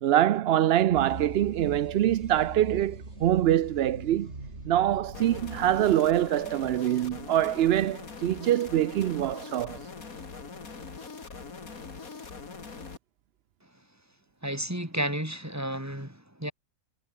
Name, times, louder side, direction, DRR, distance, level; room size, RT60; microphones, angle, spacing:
voice 1, 0.0-4.3 4.7-9.8, right 12 dB, 75° right, 0.5 m, -24 dB
sound 1, 0.9-6.0, right 2 dB, 45° right, 4.8 m, -42 dB
sound 2, 5.1-13.0, left 4 dB, 65° left, 3.1 m, -42 dB
voice 2, 14.4-16.5, right 1 dB, 10° right, 4.9 m, -32 dB
omnidirectional pair, 1.6 m